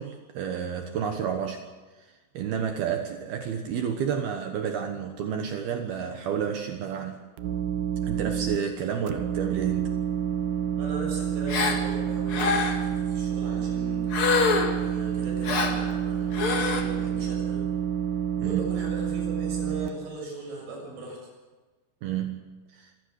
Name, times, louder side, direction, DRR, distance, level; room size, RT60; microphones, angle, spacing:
voice 1, 0.0-1.7 2.3-7.2 8.0-9.9 18.4-18.6 22.0-22.5 22.7-22.9, right 8 dB, 70° right, 5 dB, 2.5 m, -30 dB
sound 1, 7.4-8.6 9.1-19.9, right 9 dB, 85° right, 2.3 m, -28 dB
voice 2, 10.8-14.4 14.7-17.7 18.4-21.2, right 2 dB, 45° right, 0 dB, 8.5 m, -39 dB
Gasp, 11.5-11.8 12.3-12.9 14.1-14.8 15.4-15.8 16.3-16.8, left 4 dB, 85° left, 1.2 m, -25 dB
25.0 x 16.5 x 6.5 m, 1.3 s
omnidirectional pair, 5.9 m